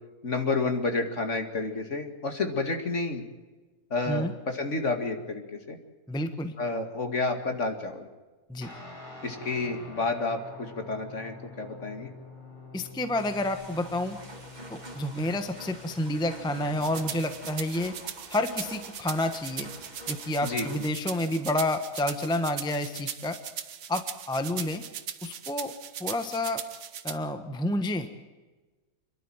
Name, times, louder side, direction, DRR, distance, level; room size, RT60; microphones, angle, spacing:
voice 1, 0.2-3.2 3.9-5.8 6.6-8.1 9.2-12.1 20.4-20.9, left 3 dB, 45° left, 5 dB, 2.5 m, -30 dB
voice 2, 6.1-6.5 8.5-8.7 12.7-14.2 14.7-17.9 18.3-19.7 20.1-23.4 23.9-24.8 25.2-25.7 26.0-26.6 27.0-28.1, left 1 dB, 5° left, 8 dB, 1.0 m, -29 dB
Guitar, 8.6-17.5, left 3 dB, 30° left, 5.7 m, -47 dB
sound 1, 13.2-20.9, right 1 dB, 25° right, 3.2 m, -46 dB
sound 2, 16.8-27.2, right 9 dB, 85° right, 1.6 m, -39 dB
27.5 x 11.5 x 9.0 m, 1.3 s
omnidirectional pair, 1.7 m